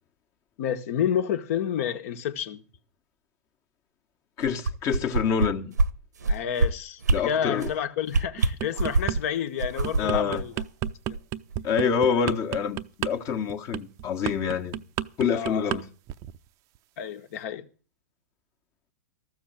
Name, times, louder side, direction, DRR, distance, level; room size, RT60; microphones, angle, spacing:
voice 1, 0.6-2.6 6.3-10.5 11.1-11.2 15.3-15.8 17.0-17.7, left 9 dB, 55° left, 1.5 m, -30 dB
voice 2, 4.4-5.7 7.1-7.7 10.0-10.4 11.6-14.8 15.2-15.9, left 7 dB, 35° left, 1.4 m, -26 dB
sound 1, 4.4-5.5 5.8-5.9 6.2-6.7 7.0-7.2 7.6-7.8 8.1-9.2 9.6-11.2 11.5-11.6, right 3 dB, 85° right, 1.1 m, -24 dB
sound 2, 8.4-9.2 9.6-15.8 16.1-16.4, right 13 dB, 35° right, 0.6 m, -31 dB
13.5 x 7.2 x 8.9 m
hypercardioid pair, 115°, 9 cm